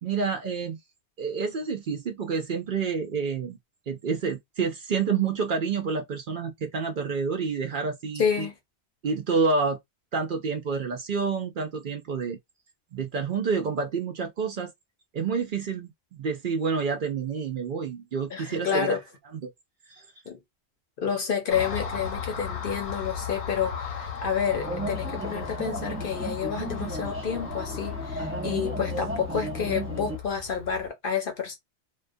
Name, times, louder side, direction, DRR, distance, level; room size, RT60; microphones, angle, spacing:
voice 1, 0.0-0.8 1.2-3.6 3.9-8.5 9.0-9.8 10.1-12.4 12.9-14.7 15.1-19.0 19.4-19.5 19.9-20.0, right 5 dB, 55° right, 0.7 m, -28 dB
voice 2, 8.2-8.5 18.3-19.0 20.3-20.4 21.0-31.6, left 7 dB, 60° left, 0.8 m, -29 dB
Car passing by, 21.5-30.9, left 7 dB, 80° left, 1.1 m, -36 dB
sound 1, 24.5-30.2, right 2 dB, 20° right, 0.4 m, -35 dB
2.3 x 2.2 x 2.5 m
omnidirectional pair, 1.1 m